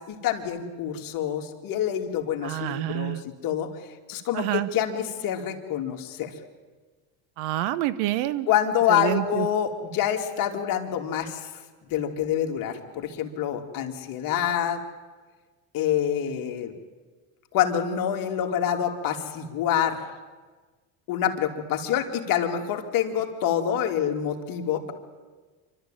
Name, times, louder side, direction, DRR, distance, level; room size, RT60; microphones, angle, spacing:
voice 1, 0.0-3.7 4.1-6.3 8.5-11.5 11.9-14.8 15.7-16.7 17.5-20.0 21.1-24.9, left 9 dB, 50° left, 3 dB, 2.7 m, -26 dB
voice 2, 2.4-3.2 4.3-4.7 7.4-8.5 8.9-9.5, right 15 dB, 70° right, 16 dB, 1.1 m, -27 dB
26.5 x 12.5 x 9.1 m, 1.4 s
supercardioid pair, 110°, 41 cm